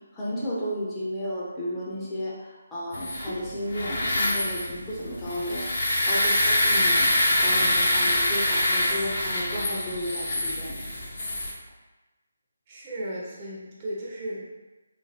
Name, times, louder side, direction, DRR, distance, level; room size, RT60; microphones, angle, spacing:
voice 1, 0.1-5.7 6.1-7.1 7.4-10.8, equal, 15° left, -8 dB, 0.6 m, -33 dB
sound 1, 2.9-11.5, left 1 dB, 50° left, 0.7 m, -25 dB
voice 2, 12.7-14.5, right 1 dB, 30° right, -6 dB, 0.6 m, -35 dB
3.0 x 2.2 x 2.8 m, 1.1 s
figure-of-eight pair, 155°, 0 cm